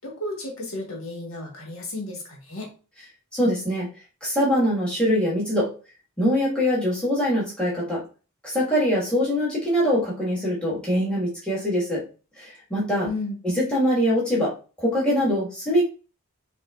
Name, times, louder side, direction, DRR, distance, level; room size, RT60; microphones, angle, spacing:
voice 1, 0.0-2.7 13.0-13.4, left 2 dB, 70° left, -2 dB, 1.3 m, -33 dB
voice 2, 3.3-3.9 4.2-5.7 6.2-8.0 8.4-12.0 12.4-13.1 13.4-14.5 14.8-15.8, equal, 5° left, -7 dB, 1.4 m, -23 dB
5.4 x 2.5 x 2.3 m, 0.35 s
head